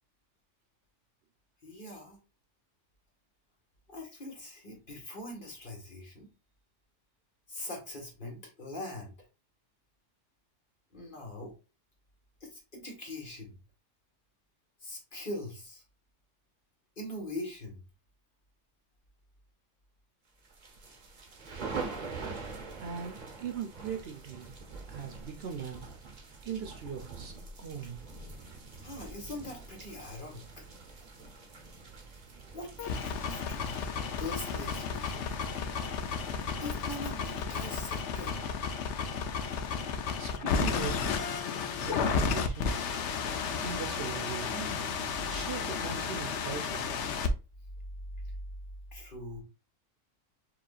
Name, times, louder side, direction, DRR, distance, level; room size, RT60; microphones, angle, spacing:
voice 1, 1.6-2.2 3.9-6.3 7.5-9.1 10.9-11.6 12.4-13.6 14.8-15.8 17.0-17.8 28.8-30.6 32.5-33.9 34.2-35.3 36.6-38.4 48.9-49.4, left 1 dB, 45° left, 1.6 m, -42 dB
sound 1, 20.4-37.4, right 4 dB, 40° right, 1.0 m, -45 dB
voice 2, 22.8-24.5 24.9-25.9 26.4-28.0 40.2-41.2 41.8-42.9 43.6-44.7 45.3-46.9, right 6 dB, 60° right, 0.9 m, -40 dB
sound 2, 32.8-47.3, left 5 dB, 70° left, 0.9 m, -33 dB
6.9 x 3.0 x 2.4 m
omnidirectional pair, 1.3 m